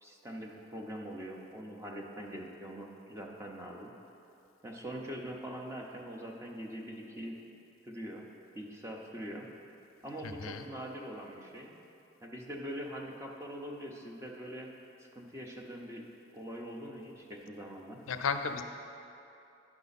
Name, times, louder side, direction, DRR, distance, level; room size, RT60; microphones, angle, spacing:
voice 1, 0.0-3.9 4.6-7.4 7.8-8.2 8.5-9.5 10.0-11.7 12.2-14.7 15.0-16.0 16.3-18.0, equal, 15° right, 0 dB, 0.7 m, -43 dB
voice 2, 10.2-10.7 18.1-18.6, left 6 dB, 85° left, 7 dB, 0.5 m, -34 dB
9.8 x 5.8 x 4.1 m, 2.8 s
head